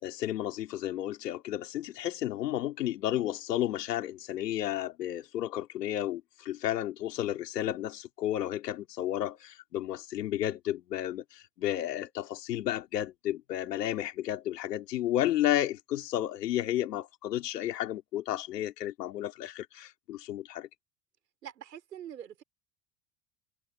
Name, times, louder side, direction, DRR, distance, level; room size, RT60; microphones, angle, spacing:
voice 1, 0.0-20.7, left 12 dB, 85° left, 3.4 m, -32 dB
voice 2, 21.4-22.4, right 10 dB, 90° right, 4.4 m, -44 dB
hypercardioid pair, 75°, 47 cm